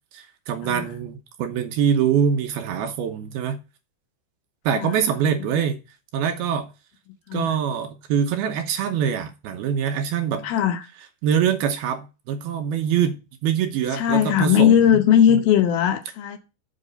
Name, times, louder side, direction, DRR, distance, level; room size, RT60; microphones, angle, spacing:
voice 1, 0.1-3.6 4.7-5.8 6.1-6.7 7.3-10.5 11.2-13.2 13.4-15.0 15.3-15.4, right 8 dB, 75° right, 2.6 m, -24 dB
voice 2, 10.4-10.9 13.9-16.4, left 9 dB, 75° left, 2.5 m, -19 dB
7.7 x 6.0 x 6.7 m
omnidirectional pair, 4.9 m